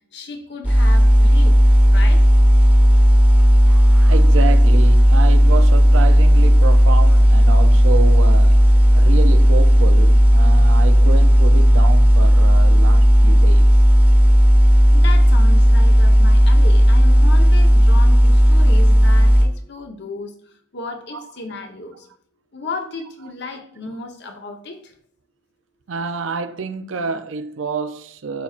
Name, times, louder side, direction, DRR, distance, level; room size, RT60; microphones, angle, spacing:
voice 1, 0.1-1.6 1.8-2.2 14.9-20.3 20.7-22.1 22.5-24.8, left 3 dB, 60° left, 1.0 m, -34 dB
sound 1, 0.6-19.4, equal, 5° right, 1.1 m, -12 dB
voice 2, 3.6-8.6 8.9-13.7 21.1-21.2 25.9-28.4, right 4 dB, 80° right, 0.5 m, -28 dB
11.5 x 4.2 x 2.5 m
head